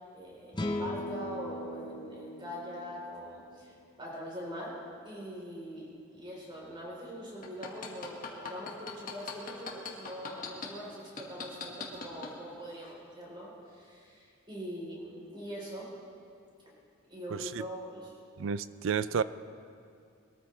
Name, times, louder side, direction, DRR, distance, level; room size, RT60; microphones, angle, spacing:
voice 1, 0.0-15.9 17.1-18.1, equal, 25° right, -4 dB, 3.8 m, -43 dB
sound 1, 0.5-3.8, left 1 dB, 20° left, 0.9 m, -38 dB
sound 2, 7.4-10.7 11.2-12.3 12.8-12.9, left 5 dB, 45° left, 1.7 m, -39 dB
voice 2, 17.3-17.6 18.4-19.2, right 6 dB, 65° right, 15 dB, 0.4 m, -31 dB
22.0 x 13.5 x 3.3 m, 2.4 s
head